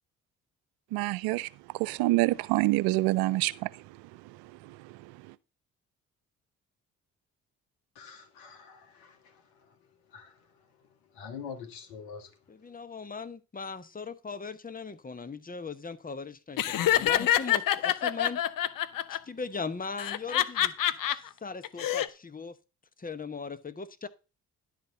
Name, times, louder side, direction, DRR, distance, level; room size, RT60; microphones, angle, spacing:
voice 1, 0.9-1.5 1.7-3.7 4.7-4.8, right 19 dB, 80° right, 0.6 m, -26 dB
voice 2, 7.9-9.4 10.1-10.3 11.1-12.3, left 6 dB, 80° left, 1.7 m, -44 dB
voice 3, 12.5-18.4 19.1-20.7 21.1-22.6 23.0-24.1, left 4 dB, 25° left, 1.1 m, -39 dB
Laughter, 16.6-19.2 20.0-21.2 21.6-22.1, left 12 dB, 60° left, 0.8 m, -26 dB
11.0 x 4.3 x 6.9 m
hypercardioid pair, 45°, 37 cm